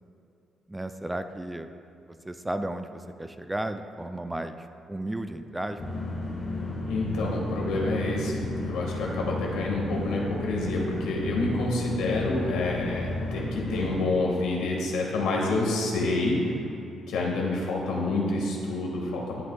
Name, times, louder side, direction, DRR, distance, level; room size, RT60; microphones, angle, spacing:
voice 1, 0.7-1.7 2.2-5.8, right 1 dB, 10° right, 8 dB, 0.3 m, -34 dB
sound 1, 5.8-14.0, left 2 dB, 30° left, 1.4 m, -33 dB
voice 2, 6.9-16.6 17.1-19.4, left 2 dB, 85° left, -2 dB, 1.5 m, -28 dB
11.0 x 7.7 x 2.2 m, 2.7 s
cardioid pair, 90°, 0 cm